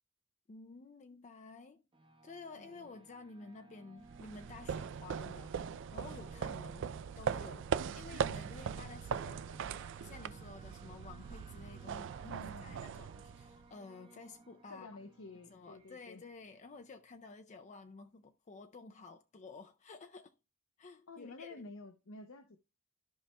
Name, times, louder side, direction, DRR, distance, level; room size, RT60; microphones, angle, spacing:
voice 1, 0.5-1.8 2.2-9.7 10.0-14.9 15.5-20.3 20.8-21.7, left 3 dB, 35° left, 0.4 m, -52 dB
sound 1, 1.9-17.3, right 2 dB, 25° right, 0.9 m, -60 dB
voice 2, 2.6-2.9 12.2-13.0 14.7-16.2 21.1-22.6, left 3 dB, 65° left, 0.7 m, -51 dB
sound 2, 4.1-13.7, right 7 dB, 60° right, 0.3 m, -40 dB
13.5 x 5.6 x 2.2 m
head